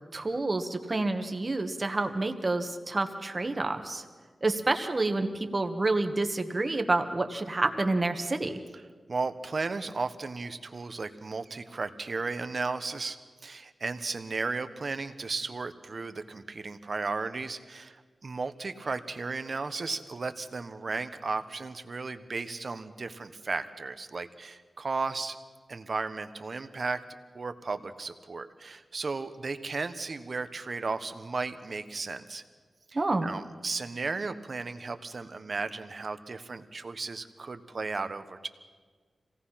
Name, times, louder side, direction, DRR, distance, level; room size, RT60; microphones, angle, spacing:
voice 1, 0.1-4.0 4.4-8.6 32.9-33.3, right 2 dB, 30° right, 6 dB, 1.4 m, -28 dB
voice 2, 9.1-25.4 25.7-27.0 27.3-32.4 32.9-38.5, right 4 dB, 50° right, 10 dB, 1.1 m, -35 dB
26.0 x 17.5 x 5.8 m, 1.5 s
wide cardioid pair, 115°, 0 cm